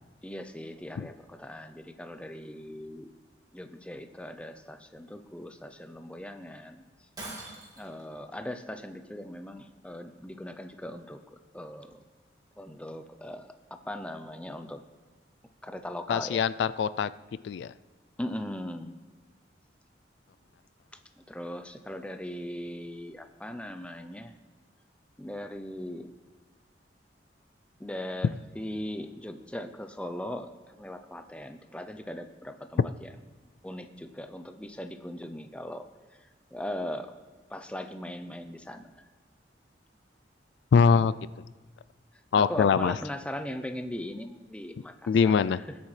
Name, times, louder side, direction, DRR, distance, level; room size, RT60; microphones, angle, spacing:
voice 1, 0.2-3.1 3.5-6.8 7.8-12.0 12.6-13.5 13.9-14.8 15.6-16.4 18.2-19.0 21.3-24.3 25.2-26.1 27.8-33.1 33.6-35.8 36.5-37.1 37.5-38.9 42.4-45.3 45.7-45.8, left 1 dB, 5° left, 8 dB, 0.5 m, -39 dB
Shatter, 7.2-8.0, right 2 dB, 20° right, 2.5 m, -42 dB
voice 2, 16.1-17.1 17.4-17.7 40.7-41.1 42.3-42.9 45.1-45.6, left 6 dB, 80° left, 16 dB, 0.3 m, -23 dB
20.0 x 8.3 x 3.3 m, 1.3 s
head